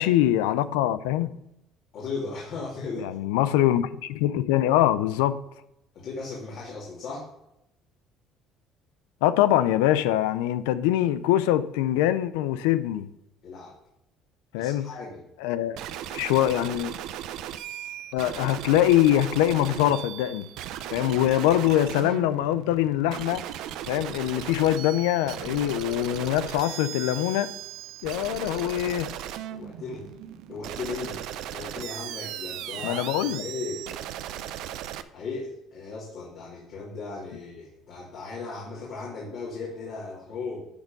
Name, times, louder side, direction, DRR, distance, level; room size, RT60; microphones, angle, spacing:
voice 1, 0.0-1.4 3.0-5.4 9.2-13.1 14.5-14.9 15.4-15.8 16.1-16.9 18.1-20.5 20.9-23.5 23.9-27.5 28.0-29.1 32.8-33.5, left 13 dB, 90° left, 0.4 m, -23 dB
voice 2, 1.9-3.1 5.9-7.3 13.4-13.7 14.6-15.2 29.5-30.1 30.5-33.0 33.4-33.8 35.1-40.7, left 4 dB, 65° left, 2.5 m, -36 dB
sound 1, 15.8-35.0, right 11 dB, 75° right, 0.5 m, -37 dB
10.5 x 4.3 x 5.3 m
supercardioid pair, 80°, 0 cm